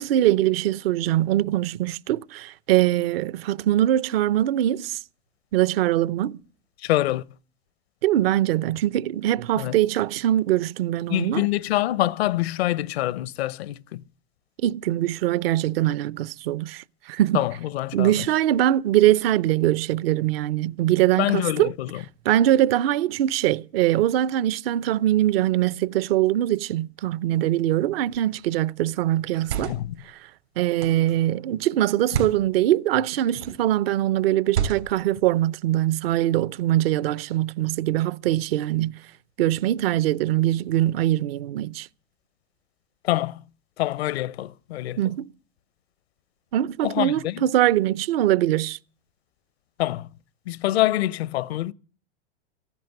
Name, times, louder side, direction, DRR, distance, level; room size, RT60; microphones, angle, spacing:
voice 1, 0.0-5.0 5.5-6.4 8.0-11.4 14.6-17.4 17.9-21.7 22.2-29.7 30.6-39.0 39.4-41.9 45.0-45.3 46.5-48.8, right 13 dB, 60° right, 0.7 m, -22 dB
voice 2, 6.8-7.3 9.6-9.8 11.1-14.0 17.3-18.3 21.2-22.0 29.6-30.0 43.0-43.4 43.8-45.0 46.8-47.4 49.8-50.1 50.5-51.7, left 15 dB, 70° left, 0.7 m, -25 dB
sound 1, 28.1-28.4 29.2-30.0 30.8-31.1 32.0-32.4 33.3-33.7 34.5-35.1, right 8 dB, 90° right, 3.7 m, -30 dB
14.5 x 11.0 x 8.0 m
hypercardioid pair, 100°, 33 cm